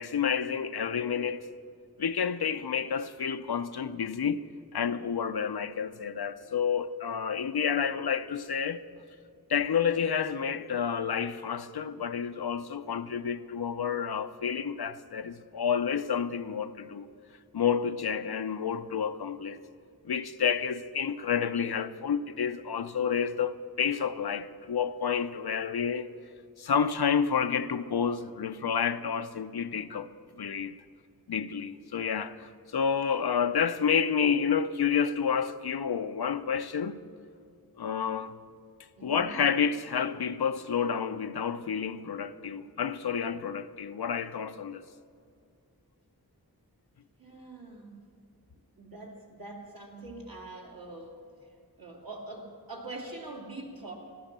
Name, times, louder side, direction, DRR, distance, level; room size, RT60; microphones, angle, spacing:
voice 1, 0.0-1.5 2.0-4.4 4.7-8.8 9.5-17.1 17.5-19.6 20.0-26.1 26.6-30.1 30.4-30.8 31.3-37.0 37.8-38.3 39.0-44.8, left 7 dB, 90° left, 0.6 m, -29 dB
voice 2, 39.0-39.4 47.2-48.0 48.8-53.9, right 2 dB, 65° right, 2.5 m, -44 dB
14.5 x 12.0 x 6.7 m
wide cardioid pair, 50°, 37 cm